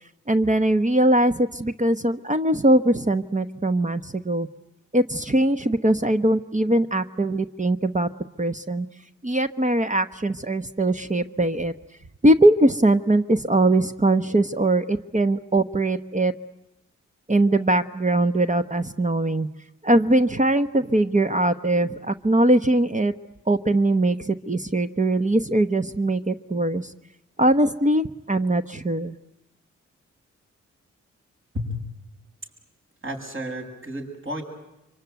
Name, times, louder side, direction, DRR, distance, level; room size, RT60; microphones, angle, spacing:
voice 1, 0.3-4.5 4.9-8.1 8.4-8.9 9.2-11.7 12.2-16.3 17.3-19.5 19.8-23.1 23.5-26.9 27.4-29.2, right 1 dB, 25° right, 9 dB, 1.0 m, -21 dB
voice 2, 33.0-34.4, equal, 40° right, 2 dB, 7.8 m, -31 dB
24.5 x 24.0 x 9.4 m, 0.89 s
supercardioid pair, 40°, 31 cm